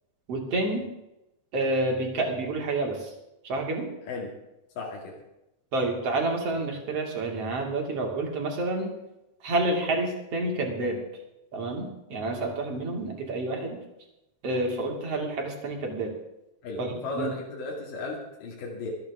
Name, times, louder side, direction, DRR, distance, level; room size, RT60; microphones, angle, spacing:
voice 1, 0.3-0.9 1.5-3.1 3.4-3.9 5.7-8.9 9.4-11.0 11.5-13.8 14.4-16.1 16.8-17.3, right 2 dB, 45° right, 1 dB, 3.3 m, -29 dB
voice 2, 4.8-5.1 16.6-18.9, left 3 dB, 75° left, -3 dB, 3.9 m, -35 dB
25.5 x 9.2 x 3.6 m, 0.91 s
omnidirectional pair, 3.9 m